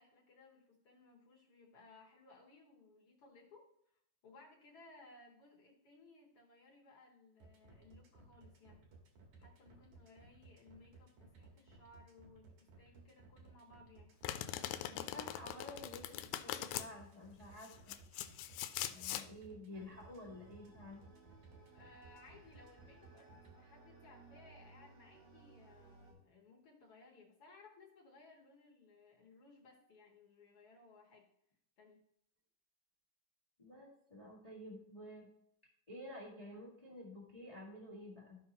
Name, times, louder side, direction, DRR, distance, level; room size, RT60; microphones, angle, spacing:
voice 1, 0.0-8.8 9.4-14.1 21.7-23.3 23.6-31.3 31.8-32.0, left 3 dB, 55° left, -1 dB, 1.8 m, -62 dB
sound 1, 7.4-23.5, right 3 dB, 65° right, 2.7 m, -60 dB
Domestic sounds home sounds, 14.2-16.9 17.6-19.3, left 12 dB, 80° left, 2.0 m, -41 dB
voice 2, 14.6-18.0 18.9-21.3 33.6-35.3 35.9-38.4, left 1 dB, 25° left, -4 dB, 0.9 m, -51 dB
sound 2, 19.7-26.1, right 4 dB, 80° right, 3.9 m, -61 dB
13.0 x 5.5 x 2.9 m, 0.73 s
omnidirectional pair, 3.8 m